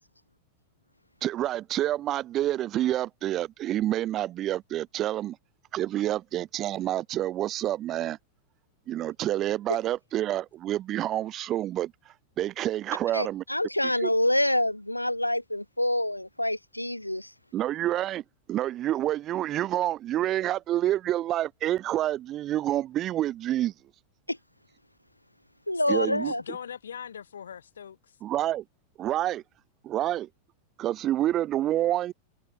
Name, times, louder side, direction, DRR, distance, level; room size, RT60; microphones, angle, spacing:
voice 1, 1.2-5.4 5.7-8.2 8.9-11.9 12.4-13.4 14.0-14.1 17.5-18.2 18.5-23.7 25.9-26.3 28.2-28.6 29.0-29.4 29.8-30.3 30.8-32.1, right 13 dB, 30° right, 1.4 m, -28 dB
voice 2, 13.1-17.3 24.3-24.4 25.7-26.4, left 1 dB, 85° left, 0.6 m, -27 dB
voice 3, 25.7-28.2, left 8 dB, 65° left, 6.3 m, -40 dB
figure-of-eight pair, 90°, 0 cm